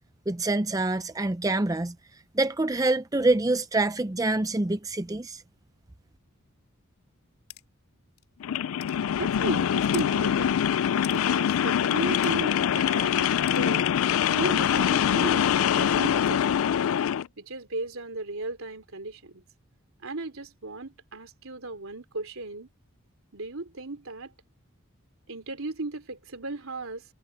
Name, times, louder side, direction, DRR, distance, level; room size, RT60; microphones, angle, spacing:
voice 1, 0.3-1.9 2.3-5.4, right 2 dB, 15° right, 0.5 m, -26 dB
sound 1, 7.5-7.6 8.2-8.3 8.8-9.0 9.9-10.1 11.0-11.2 12.2-12.4 13.5-13.6, left 14 dB, 90° left, 2.7 m, -42 dB
sound 2, 8.4-17.3, left 9 dB, 70° left, 0.3 m, -24 dB
voice 2, 9.2-10.6 11.1-13.9 14.3-16.7 17.4-19.4 20.0-22.7 23.3-24.3 25.3-27.0, right 2 dB, 75° right, 3.2 m, -35 dB
head